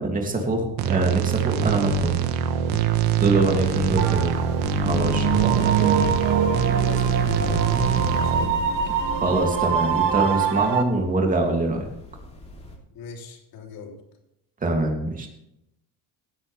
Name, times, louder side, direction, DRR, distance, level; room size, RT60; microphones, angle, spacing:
voice 1, 0.0-2.2 3.2-4.4 4.8-6.0 9.1-11.9 14.6-15.3, right 2 dB, 20° right, 2 dB, 2.8 m, -24 dB
sound 1, 0.8-8.5, right 7 dB, 90° right, 1.5 m, -23 dB
sound 2, 2.6-12.8, left 1 dB, 15° left, 3.1 m, -37 dB
sound 3, 4.0-10.8, right 8 dB, 55° right, 2.0 m, -25 dB
voice 2, 6.8-8.6 12.9-14.0, left 4 dB, 70° left, 1 dB, 3.5 m, -39 dB
17.0 x 11.0 x 3.5 m, 0.80 s
cardioid pair, 150°, 37 cm